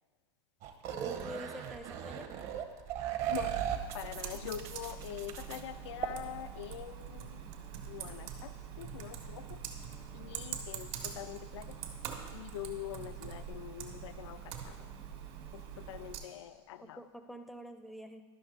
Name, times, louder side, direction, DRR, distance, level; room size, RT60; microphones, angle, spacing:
sound 1, 0.6-5.6 6.0-6.1, right 10 dB, 45° right, 0.9 m, -37 dB
voice 1, 1.0-2.3 16.8-18.2, equal, ahead, 7 dB, 0.5 m, -46 dB
Computer keyboard, 3.2-16.2, right 8 dB, 60° right, 1.5 m, -44 dB
voice 2, 3.9-7.4 7.8-9.6 10.1-11.8 12.3-14.9 15.5-17.0, left 11 dB, 85° left, 13 dB, 0.4 m, -44 dB
12.0 x 5.6 x 4.0 m, 1.5 s
supercardioid pair, 135°, 14 cm